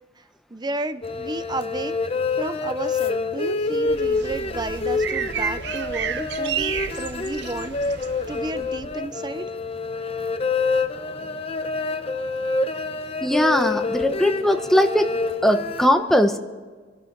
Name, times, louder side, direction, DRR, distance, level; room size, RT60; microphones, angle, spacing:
voice 1, 0.5-1.9 2.4-8.0 8.3-9.5, right 2 dB, 25° right, 12 dB, 0.6 m, -32 dB
sound 1, 1.0-15.9, left 3 dB, 30° left, 0.8 m, -27 dB
sound 2, 3.9-8.9, right 8 dB, 60° right, 0.6 m, -32 dB
voice 2, 13.2-15.2 15.4-16.4, equal, ahead, 5 dB, 1.0 m, -19 dB
24.0 x 11.5 x 3.9 m, 1.4 s
head